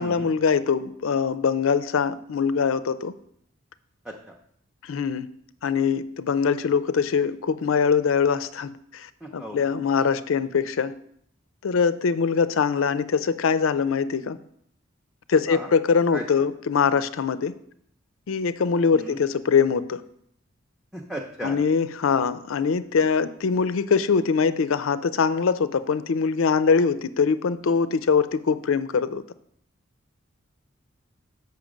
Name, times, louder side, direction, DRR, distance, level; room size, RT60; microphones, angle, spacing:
voice 1, 0.0-3.1 4.8-5.3 5.6-10.9 11.6-14.4 15.3-17.5 18.3-20.0 21.4-29.2, left 5 dB, 85° left, 15 dB, 0.4 m, -23 dB
voice 2, 9.2-9.7 15.5-15.7 16.1-16.4 18.9-19.2 20.9-21.6, equal, ahead, -1 dB, 0.6 m, -36 dB
7.2 x 5.9 x 5.1 m, 0.70 s
head